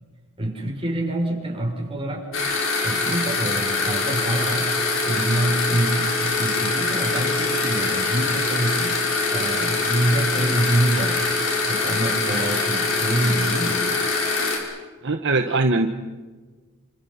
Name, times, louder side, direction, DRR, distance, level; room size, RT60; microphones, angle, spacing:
voice 1, 0.4-2.3 2.8-4.7 5.0-9.0 9.3-11.2 11.7-13.9, right 1 dB, 25° right, 0 dB, 6.6 m, -26 dB
sound 1, 2.3-14.6, left 3 dB, 70° left, 6.3 m, -23 dB
voice 2, 15.0-15.9, right 3 dB, 60° right, 6 dB, 1.2 m, -21 dB
29.0 x 27.0 x 5.8 m, 1.4 s
head